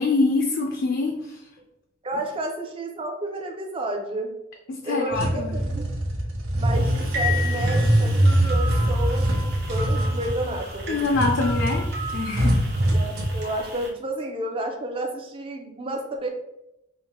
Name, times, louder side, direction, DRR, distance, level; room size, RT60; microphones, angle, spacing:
voice 1, 0.0-1.4 4.7-5.5 10.9-11.9 12.1-12.6, left 3 dB, 55° left, 2 dB, 0.4 m, -24 dB
voice 2, 2.0-4.3 4.8-5.9 6.5-11.0 12.9-16.3, right 1 dB, 25° right, 3 dB, 0.5 m, -31 dB
sound 1, 5.1-13.4, right 1 dB, 80° right, 0.8 m, -23 dB
sound 2, 6.7-13.9, left 2 dB, 50° right, 0.9 m, -35 dB
5.1 x 2.1 x 3.0 m, 0.87 s
head